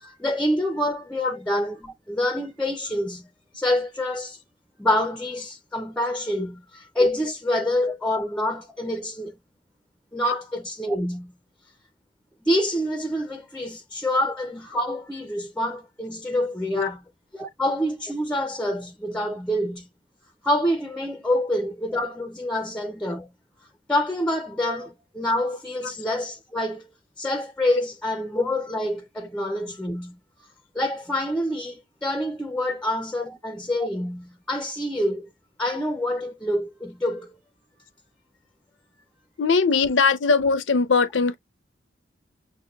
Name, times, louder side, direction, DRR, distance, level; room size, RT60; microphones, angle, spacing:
voice 1, 0.0-3.3 3.5-4.4 4.8-9.3 10.1-11.3 12.4-17.0 17.3-19.9 20.4-23.3 23.9-26.9 27.2-30.2 30.7-35.3 35.6-37.3, left 1 dB, 5° left, 0.4 m, -26 dB
voice 2, 39.4-41.4, left 4 dB, 90° left, 0.6 m, -21 dB
6.2 x 2.2 x 2.3 m
head